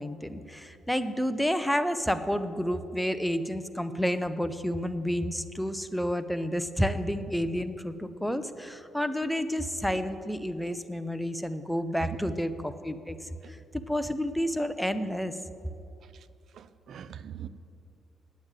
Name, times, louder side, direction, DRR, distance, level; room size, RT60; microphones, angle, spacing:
voice 1, 0.0-13.2 13.5-15.3, equal, 5° left, 0.7 m, -30 dB
voice 2, 16.5-17.5, right 9 dB, 60° right, 0.5 m, -42 dB
9.3 x 8.0 x 9.0 m
cardioid pair, 90°, 0 cm